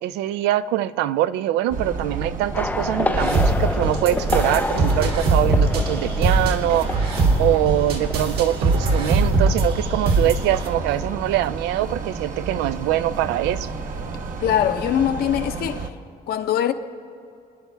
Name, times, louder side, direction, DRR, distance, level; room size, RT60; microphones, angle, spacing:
voice 1, 0.0-7.0 7.4-13.7, right 13 dB, 90° right, 0.5 m, -23 dB
sound 1, 1.7-15.9, right 4 dB, 55° right, 1.2 m, -32 dB
sound 2, 2.5-9.0 9.3-9.6, left 2 dB, 10° left, 0.4 m, -29 dB
sound 3, 3.1-10.7, right 2 dB, 70° right, 2.4 m, -21 dB
voice 2, 14.4-15.9 16.3-16.7, left 10 dB, 65° left, 0.9 m, -22 dB
29.0 x 10.5 x 3.4 m
cardioid pair, 110°, 17 cm